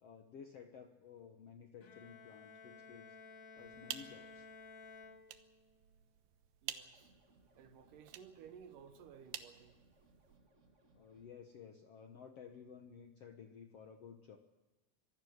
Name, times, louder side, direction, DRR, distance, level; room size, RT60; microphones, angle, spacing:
voice 1, 0.0-3.2 3.6-4.5 10.9-14.4, left 7 dB, 65° left, 1.5 m, -54 dB
Bowed string instrument, 1.8-5.8, left 4 dB, 40° left, 2.0 m, -55 dB
sound 1, 3.6-10.4, right 12 dB, 85° right, 3.0 m, -51 dB
voice 2, 6.6-7.1 7.6-9.8, right 7 dB, 70° right, 2.3 m, -56 dB
sound 2, 6.9-11.3, right 2 dB, 35° right, 1.1 m, -69 dB
25.0 x 16.5 x 6.5 m
omnidirectional pair, 4.4 m